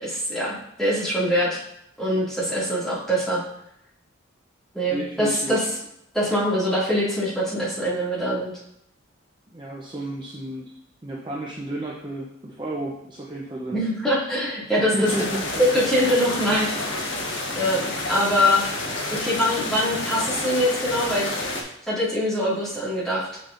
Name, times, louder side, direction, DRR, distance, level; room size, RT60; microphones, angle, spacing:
voice 1, 0.0-1.6 2.0-3.4 4.7-5.6 6.1-8.5 13.7-15.1 15.7-17.1 17.5-18.6 19.2-21.4 21.9-23.4, equal, 5° left, -9 dB, 2.1 m, -23 dB
voice 2, 4.9-5.6 9.5-10.7 11.0-13.8 14.8-15.7 16.0-16.1, right 1 dB, 25° right, -3 dB, 0.6 m, -32 dB
sound 1, 15.0-21.6, left 2 dB, 65° left, 1.2 m, -29 dB
6.5 x 6.3 x 2.5 m, 0.75 s
head